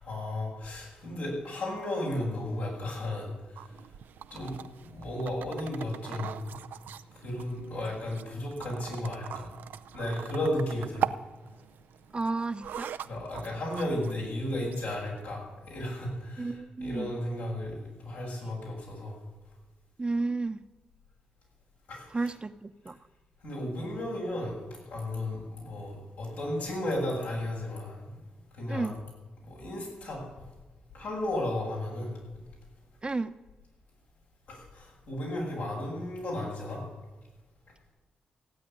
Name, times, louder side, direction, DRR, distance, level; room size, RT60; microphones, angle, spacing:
voice 1, 0.0-3.7 4.3-6.5 7.2-9.5 9.9-11.1 13.0-19.2 21.9-22.3 23.4-24.5 24.9-28.2 28.5-28.9 29.4-30.2 30.9-32.1 34.5-36.8, left 1 dB, 85° left, -3 dB, 7.2 m, -34 dB
sound 1, 3.6-15.2, right 9 dB, 85° right, 0.6 m, -41 dB
voice 2, 12.1-12.9 16.4-17.2 20.0-20.6 22.1-23.0 28.7-29.0 33.0-33.3, right 3 dB, 30° right, 9 dB, 0.9 m, -32 dB
16.0 x 8.9 x 9.8 m, 1.2 s
supercardioid pair, 55°, 3 cm